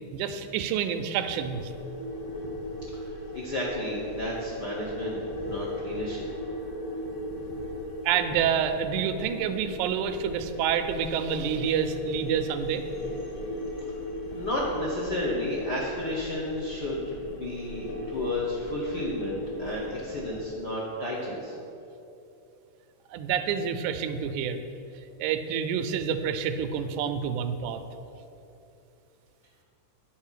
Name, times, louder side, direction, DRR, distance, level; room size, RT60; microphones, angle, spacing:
voice 1, 0.1-1.7 8.0-12.8 14.3-14.4 23.1-24.6 25.2-27.8, right 7 dB, 90° right, 9 dB, 2.1 m, -28 dB
sound 1, 1.4-20.4, left 1 dB, 55° left, 2.0 m, -38 dB
voice 2, 2.9-6.3 14.3-21.5, left 1 dB, 70° left, -5 dB, 0.9 m, -32 dB
9.5 x 4.4 x 7.3 m, 2.8 s
omnidirectional pair, 3.5 m